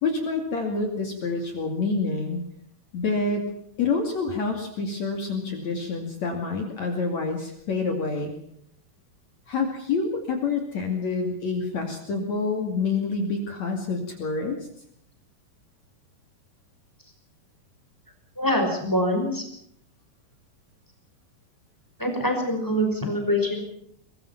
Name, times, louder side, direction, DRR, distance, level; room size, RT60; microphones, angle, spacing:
voice 1, 0.0-2.4 2.9-3.5 3.8-8.3 9.5-14.7, left 4 dB, 50° left, 3 dB, 3.5 m, -27 dB
voice 2, 18.4-19.4 22.0-23.6, equal, 5° left, 3 dB, 5.3 m, -24 dB
23.0 x 21.5 x 5.9 m, 0.70 s
omnidirectional pair, 4.3 m